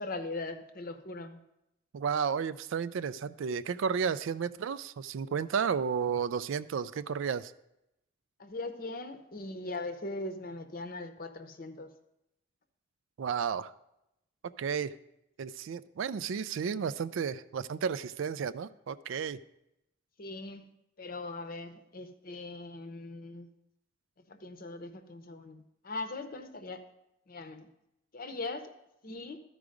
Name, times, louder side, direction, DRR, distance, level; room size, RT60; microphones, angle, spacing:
voice 1, 0.0-1.4 8.4-11.9 20.2-20.7 21.0-23.5 24.3-26.8 27.3-27.7 28.1-28.7 29.0-29.4, left 2 dB, 40° left, 8 dB, 0.7 m, -40 dB
voice 2, 1.9-7.5 13.2-13.7 14.6-14.9 15.4-19.4, right 6 dB, 65° right, 15 dB, 0.3 m, -32 dB
13.0 x 4.8 x 5.1 m, 0.86 s
head